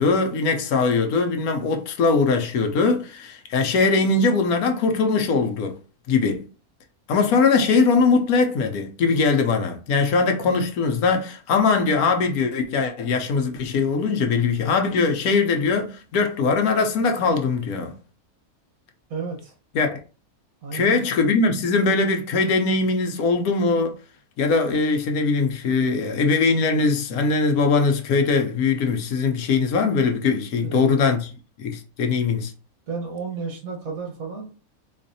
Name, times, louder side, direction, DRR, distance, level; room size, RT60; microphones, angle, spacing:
voice 1, 0.0-5.8 6.1-6.5 7.1-18.0 19.7-20.0 20.7-24.0 24.4-31.3 31.6-32.5, left 4 dB, 80° left, 1.1 m, -21 dB
voice 2, 19.1-19.5 20.6-21.1 30.6-31.0 32.9-34.5, right 4 dB, 70° right, 1.5 m, -32 dB
4.0 x 2.5 x 2.6 m
omnidirectional pair, 1.6 m